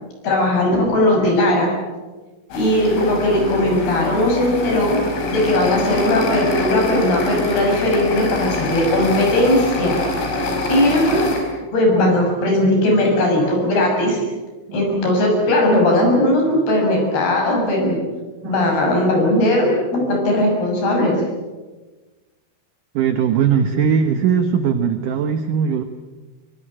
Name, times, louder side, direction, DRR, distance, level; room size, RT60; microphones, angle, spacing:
voice 1, 0.2-1.7 2.5-5.0 5.3-9.9 10.7-11.2 11.7-14.2 14.7-18.0 18.4-21.2, left 1 dB, 55° left, 1 dB, 8.6 m, -18 dB
sound 1, 2.5-11.4, left 2 dB, 75° left, 7.4 m, -25 dB
voice 2, 22.9-25.8, right 7 dB, 80° right, 8 dB, 1.8 m, -20 dB
24.5 x 22.5 x 8.8 m, 1.3 s
omnidirectional pair, 5.5 m